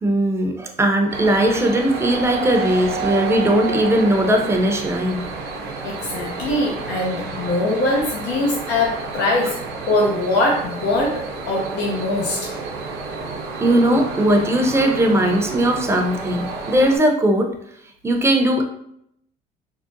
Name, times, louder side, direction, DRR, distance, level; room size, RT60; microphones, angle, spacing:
voice 1, 0.0-5.3 13.6-17.5 18.0-18.6, right 1 dB, 15° right, 2 dB, 0.5 m, -18 dB
sound 1, 1.1-17.0, right 4 dB, 75° right, 0.6 m, -30 dB
voice 2, 5.8-9.6 9.9-12.5, left 2 dB, 85° left, -2 dB, 0.6 m, -22 dB
3.7 x 2.0 x 2.5 m, 0.73 s
cardioid pair, 110°, 17 cm